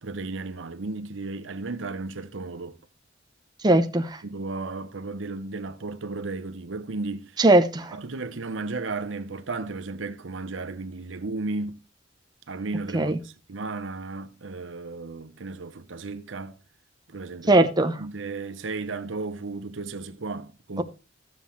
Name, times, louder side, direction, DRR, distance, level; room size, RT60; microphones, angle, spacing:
voice 1, 0.0-2.8 4.2-7.4 7.9-11.8 12.5-16.6 17.1-17.6 18.0-20.8, right 3 dB, 90° right, 0.8 m, -34 dB
voice 2, 3.6-4.2 7.4-8.0 12.9-13.2 17.5-18.0 20.8-20.9, right 2 dB, 20° right, 0.8 m, -20 dB
15.0 x 7.3 x 3.1 m
head